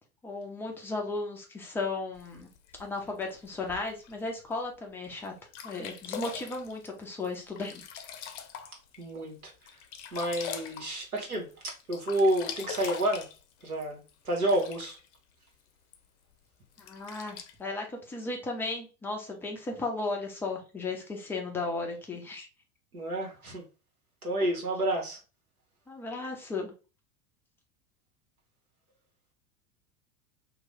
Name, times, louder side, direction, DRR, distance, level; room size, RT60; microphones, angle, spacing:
voice 1, 0.2-2.5 2.8-5.3 5.6-7.8 16.8-22.5 25.9-26.7, left 3 dB, 5° left, 0.3 m, -35 dB
Sink (filling or washing), 2.2-4.1 4.7-4.8 5.2-5.3 5.5-9.0 9.4-11.5 11.8-15.1 15.9-16.0 16.7-17.5, left 8 dB, 55° left, 0.6 m, -42 dB
voice 2, 9.0-9.5 10.1-13.3 13.6-15.0 22.9-23.6 24.2-25.2, right 1 dB, 80° right, 1.3 m, -30 dB
2.9 x 2.2 x 4.0 m
figure-of-eight pair, 80°, 43 cm